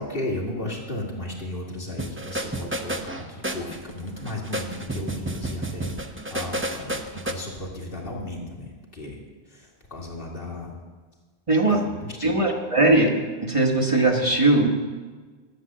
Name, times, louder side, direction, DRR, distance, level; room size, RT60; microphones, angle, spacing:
voice 1, 0.0-8.7 8.9-9.2 9.5-10.7 11.7-12.3, left 1 dB, 60° left, -2 dB, 2.4 m, -34 dB
sound 1, 2.0-7.3, right 1 dB, 15° right, 0.6 m, -31 dB
voice 2, 11.5-11.9 12.2-13.1 13.4-14.7, right 2 dB, 30° right, 1 dB, 1.2 m, -19 dB
11.5 x 7.8 x 7.5 m, 1.4 s
omnidirectional pair, 1.0 m